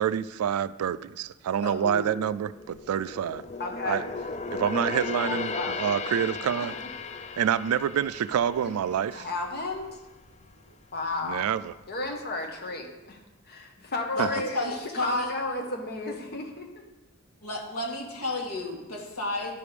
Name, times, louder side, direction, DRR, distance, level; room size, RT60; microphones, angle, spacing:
voice 1, 0.0-3.4 3.9-4.0 4.5-6.7 7.4-9.3 11.2-11.7 14.2-14.3, right 9 dB, 75° right, 0.3 m, -27 dB
voice 2, 1.6-2.1 14.1-15.3 17.4-19.6, left 2 dB, 85° left, 1.9 m, -32 dB
sound 1, 2.3-9.9 10.2-10.5 11.0-11.7 12.1-12.2, left 4 dB, 30° left, 0.5 m, -36 dB
voice 3, 3.6-4.0 5.3-5.8 8.6-8.7 9.1-10.0 10.9-11.5 11.9-13.2 13.5-16.7, left 2 dB, 50° left, 1.3 m, -32 dB
11.0 x 4.9 x 5.2 m
head